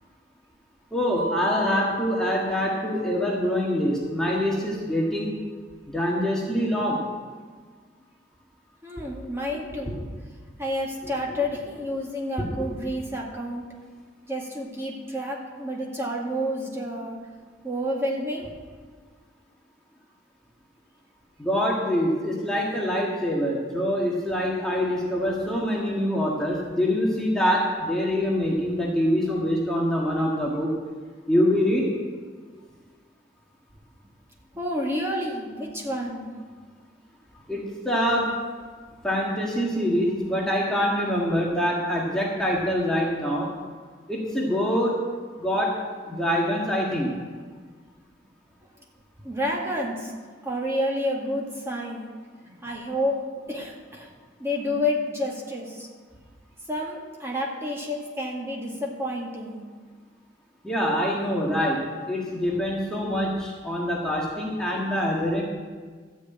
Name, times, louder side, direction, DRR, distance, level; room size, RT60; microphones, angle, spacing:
voice 1, 0.9-5.3 5.9-7.1 9.9-10.0 12.4-12.7 21.4-30.7 31.3-31.9 37.5-38.3 39.0-43.5 44.1-44.9 45.4-45.7 46.1-47.2 60.6-65.4, equal, 5° left, -4 dB, 1.7 m, -25 dB
Mallet percussion, 1.2-3.2, left 2 dB, 85° right, 4.7 m, -34 dB
voice 2, 8.8-10.0 10.6-13.6 14.3-17.2 17.6-18.5 34.5-36.3 49.2-50.1 50.4-52.1 52.6-53.2 53.5-54.1 54.4-55.9 56.7-59.6, left 1 dB, 15° right, -2 dB, 1.9 m, -29 dB
13.0 x 6.4 x 8.7 m, 1.5 s
head